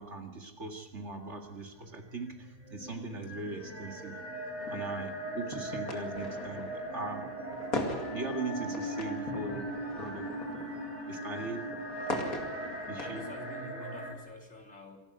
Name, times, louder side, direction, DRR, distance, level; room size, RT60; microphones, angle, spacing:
voice 1, 0.0-4.2 4.7-7.3 8.1-9.7 10.0-10.3 11.1-11.7 12.9-13.3, right 3 dB, 50° right, 4 dB, 2.4 m, -40 dB
sound 1, 1.5-14.1, right 1 dB, 30° right, 3.8 m, -39 dB
sound 2, 4.6-13.6, left 2 dB, 70° left, 2.9 m, -41 dB
voice 2, 13.0-15.0, left 1 dB, 55° left, 1 dB, 4.1 m, -46 dB
25.5 x 12.5 x 9.6 m, 1.2 s
omnidirectional pair, 1.6 m